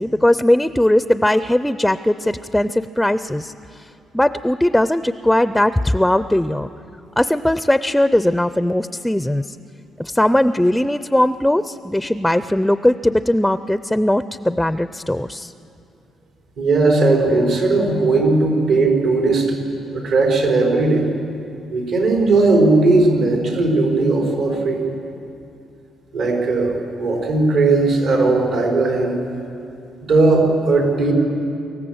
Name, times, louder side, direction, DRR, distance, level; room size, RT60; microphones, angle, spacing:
voice 1, 0.0-3.9 4.1-6.7 7.2-9.6 10.0-15.5, left 1 dB, 5° left, 13 dB, 0.4 m, -19 dB
voice 2, 16.6-19.6 19.9-21.0 21.7-24.8 26.1-29.2 30.0-31.1, right 3 dB, 85° right, 0 dB, 4.9 m, -17 dB
25.0 x 14.5 x 7.9 m, 2.6 s
cardioid pair, 90°, 0 cm